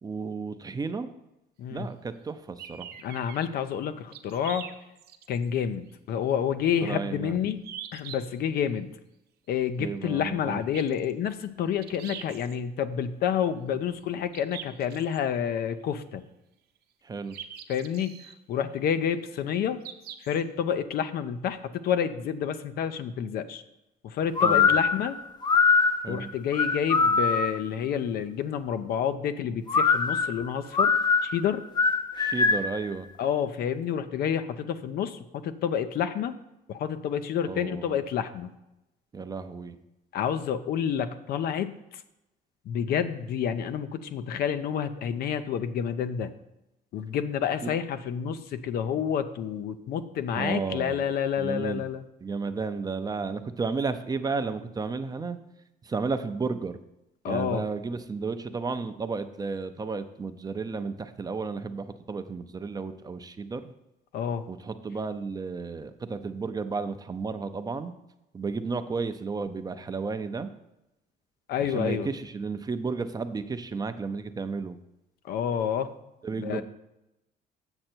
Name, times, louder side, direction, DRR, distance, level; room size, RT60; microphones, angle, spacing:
voice 1, 0.0-1.1 1.7-2.9 6.8-7.4 9.8-10.6 17.0-17.4 24.4-24.8 26.0-26.3 32.2-33.1 37.4-38.0 39.1-39.8 47.6-47.7 50.3-51.0 51.4-51.8 52.2-55.4 55.8-56.8 57.3-63.7 64.5-67.9 68.3-70.5 71.6-74.8 76.2-76.6, right 4 dB, 25° right, 9 dB, 0.5 m, -33 dB
sound 1, 2.6-3.4 4.1-5.5 5.9-6.0 7.6-8.2 10.5-11.1 11.8-12.6 14.3-15.2 17.3-18.3 19.8-20.4, right 9 dB, 70° right, 0.7 m, -42 dB
voice 2, 3.0-4.6 5.3-7.6 7.9-8.9 9.5-16.2 17.7-18.2 18.5-19.8 20.2-23.6 24.0-25.2 26.1-30.9 31.2-31.6 33.2-36.3 36.7-38.5 40.1-41.8 42.7-46.3 46.9-52.0 57.2-57.6 64.1-64.4 71.5-72.1 75.3-75.9 76.4-76.6, left 8 dB, 65° left, 11 dB, 0.6 m, -29 dB
sound 2, 24.4-27.7 29.7-32.8, left 5 dB, 25° left, 0.5 m, -23 dB
7.8 x 6.5 x 4.4 m, 0.90 s
cardioid pair, 110°, 17 cm